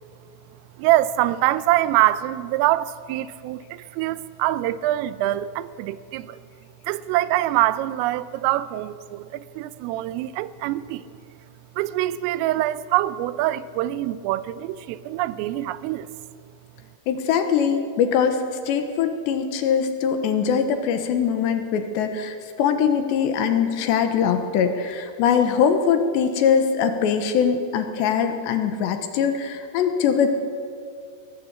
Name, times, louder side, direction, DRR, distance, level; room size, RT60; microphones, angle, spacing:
voice 1, 0.8-6.4 6.9-11.1 11.8-16.1, right 15 dB, 90° right, 3.3 m, -24 dB
voice 2, 17.1-30.3, left 7 dB, 70° left, 3.1 m, -22 dB
22.5 x 18.0 x 8.2 m
omnidirectional pair, 5.8 m